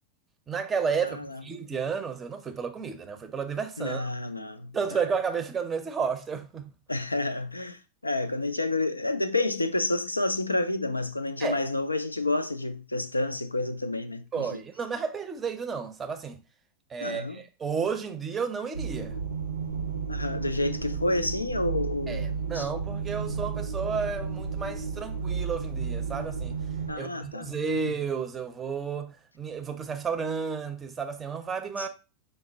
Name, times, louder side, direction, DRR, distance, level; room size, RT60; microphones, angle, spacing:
voice 1, 0.5-4.1 4.7-6.7 11.4-11.6 14.3-16.4 16.9-19.2 22.1-26.6 26.9-31.9, right 6 dB, 20° right, 0.5 m, -32 dB
voice 2, 1.0-1.4 3.8-5.0 6.9-14.6 17.0-17.4 20.1-22.7 23.2-23.4 26.9-27.5 27.8-27.9 31.8-31.9, left 2 dB, 85° left, 0.3 m, -30 dB
sound 1, 18.7-26.9, right 5 dB, 80° right, 0.5 m, -33 dB
5.1 x 2.0 x 3.8 m
figure-of-eight pair, 90°, 0 cm